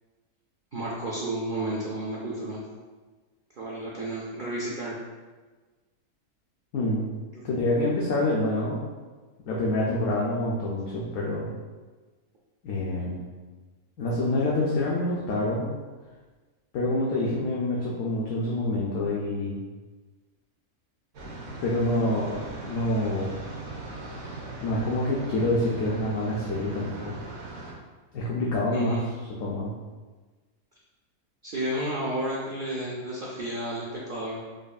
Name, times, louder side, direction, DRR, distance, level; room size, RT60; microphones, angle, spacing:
voice 1, 0.7-2.6 3.6-4.9 28.7-29.0 31.4-34.4, right 1 dB, 80° right, -6 dB, 0.4 m, -32 dB
voice 2, 6.7-7.1 7.4-8.8 9.4-11.5 12.6-13.3 14.0-15.7 16.7-19.6 21.6-23.4 24.6-27.1 28.1-29.0 29.4-29.7, left 1 dB, 70° left, -5 dB, 0.9 m, -27 dB
sound 1, 21.1-27.7, right 2 dB, 60° right, 1.0 m, -39 dB
5.0 x 2.5 x 2.3 m, 1.3 s
omnidirectional pair, 1.6 m